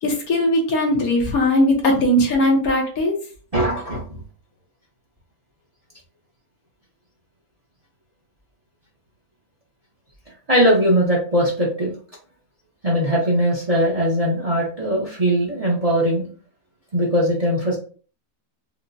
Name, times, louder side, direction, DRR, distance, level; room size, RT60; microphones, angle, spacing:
voice 1, 0.0-3.2, left 1 dB, 75° left, 1 dB, 1.4 m, -19 dB
voice 2, 3.5-4.2 10.5-11.9 12.8-16.3 16.9-17.8, equal, 30° right, -3 dB, 0.7 m, -20 dB
4.6 x 2.1 x 2.6 m, 0.40 s
omnidirectional pair, 1.6 m